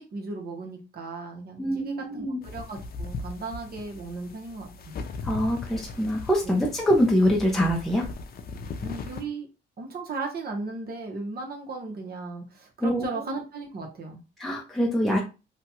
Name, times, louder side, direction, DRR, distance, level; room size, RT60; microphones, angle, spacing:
voice 1, 0.0-4.9 6.4-6.6 8.8-9.5 9.8-14.2, right 3 dB, 50° right, 2 dB, 1.0 m, -36 dB
voice 2, 1.6-2.4 5.2-8.1 12.8-13.0 14.4-15.2, equal, ahead, -1 dB, 0.6 m, -24 dB
sound 1, 2.4-9.2, left 4 dB, 50° left, 0.5 m, -38 dB
2.8 x 2.3 x 2.9 m, 0.30 s
cardioid pair, 90°, 20 cm